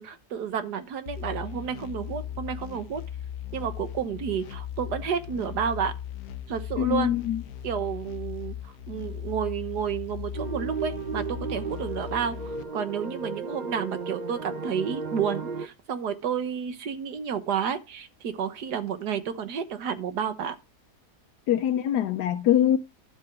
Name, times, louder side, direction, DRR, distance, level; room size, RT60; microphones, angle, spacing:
voice 1, 0.0-3.0 3.5-5.9 6.5-7.1 7.6-20.6, right 7 dB, 85° right, 1.7 m, -31 dB
sound 1, 1.1-12.6, left 10 dB, 70° left, 1.2 m, -38 dB
voice 2, 6.8-7.4 21.5-22.8, left 11 dB, 90° left, 1.3 m, -23 dB
sound 2, 10.3-15.7, right 5 dB, 40° right, 0.7 m, -34 dB
12.0 x 7.8 x 3.6 m
omnidirectional pair, 1.7 m